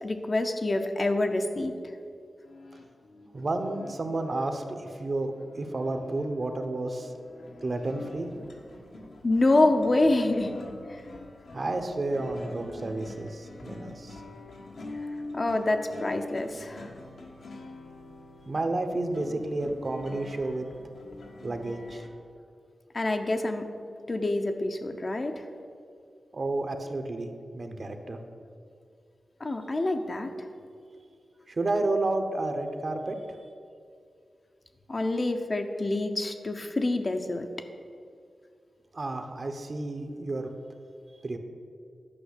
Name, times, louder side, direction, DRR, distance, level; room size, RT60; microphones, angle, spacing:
voice 1, 0.0-1.8 9.2-10.5 10.9-11.0 15.3-16.9 22.9-23.7 24.1-25.4 29.4-30.3 34.9-37.5, left 2 dB, 35° left, 5 dB, 0.8 m, -26 dB
sound 1, 2.4-22.1, left 2 dB, 75° left, 1.4 m, -45 dB
voice 2, 3.3-7.1 7.6-8.3 11.5-14.2 18.5-20.7 21.4-22.1 26.3-28.2 31.5-33.4 38.9-40.5 41.2-41.4, right 2 dB, 45° right, 6 dB, 1.0 m, -31 dB
11.0 x 5.5 x 8.3 m, 2.3 s
wide cardioid pair, 105°, 0 cm